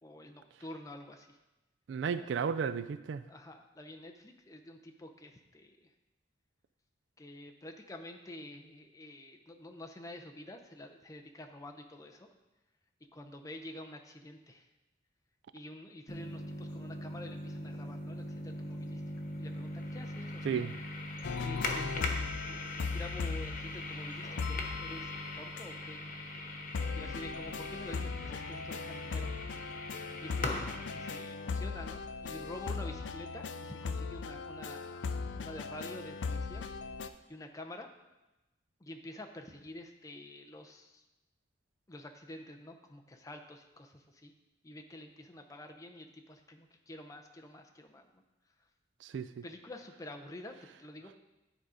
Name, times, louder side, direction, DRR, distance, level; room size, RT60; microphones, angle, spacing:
voice 1, 0.0-1.4 2.1-2.4 3.3-5.9 7.2-12.3 13.1-14.7 15.5-19.0 19.4-20.7 21.4-25.1 25.4-26.2 27.0-29.4 30.2-35.1 35.4-36.7 37.3-37.9 38.8-41.0 41.9-44.3 44.6-48.2 49.4-51.2, left 1 dB, 20° left, 4 dB, 0.6 m, -48 dB
voice 2, 1.9-3.2 20.4-20.7 49.0-49.4, right 6 dB, 80° right, 13 dB, 0.3 m, -33 dB
sound 1, 16.1-31.2, left 2 dB, 50° left, 0.8 m, -41 dB
sound 2, 21.2-24.0 24.4-25.6 26.7-37.1, left 4 dB, 85° left, 0.4 m, -38 dB
10.0 x 4.0 x 4.9 m, 1.0 s
head